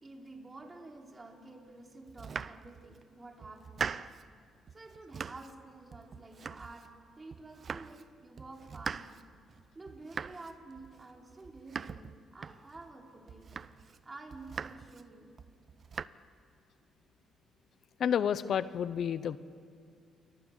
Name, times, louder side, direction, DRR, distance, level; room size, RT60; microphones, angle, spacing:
voice 1, 0.0-4.0 4.7-9.3 9.7-13.5 14.0-15.3, right 2 dB, 25° right, 1 dB, 4.3 m, -50 dB
Domestic sounds home sounds, 2.1-3.0 3.4-4.3 4.7-5.6 5.9-7.0 7.3-8.1 8.4-12.9 13.3-14.0 14.3-15.0 15.4-16.1, right 6 dB, 45° right, 0.7 m, -42 dB
voice 2, 18.0-19.4, left 8 dB, 60° left, 14 dB, 0.8 m, -30 dB
29.0 x 24.0 x 8.2 m, 2.3 s
cardioid pair, 90°, 0 cm